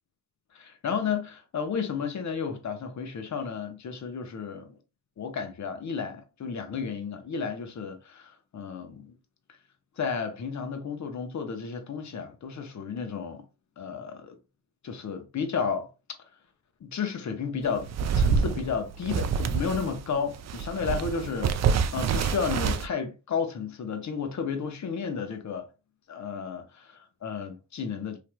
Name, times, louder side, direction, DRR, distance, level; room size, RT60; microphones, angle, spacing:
voice 1, 0.5-4.8 5.2-9.2 10.0-13.4 13.8-14.4 14.8-15.9 16.8-25.7 26.1-28.2, left 6 dB, 50° left, 0.9 m, -32 dB
sound 1, 17.6-20.0 20.4-22.9, right 6 dB, 45° right, 0.4 m, -27 dB
3.3 x 2.7 x 2.2 m
supercardioid pair, 55°, 38 cm